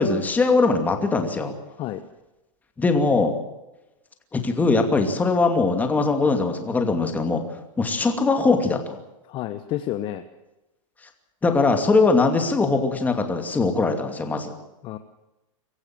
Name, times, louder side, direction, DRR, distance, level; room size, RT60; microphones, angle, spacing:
voice 1, 0.0-1.5 2.8-3.3 4.3-7.4 7.8-9.0 11.4-14.5, left 3 dB, 10° left, 5 dB, 2.6 m, -21 dB
voice 2, 9.2-10.3 14.8-15.0, left 13 dB, 30° left, 9 dB, 1.1 m, -30 dB
24.0 x 15.0 x 7.8 m, 0.98 s
supercardioid pair, 155°, 17 cm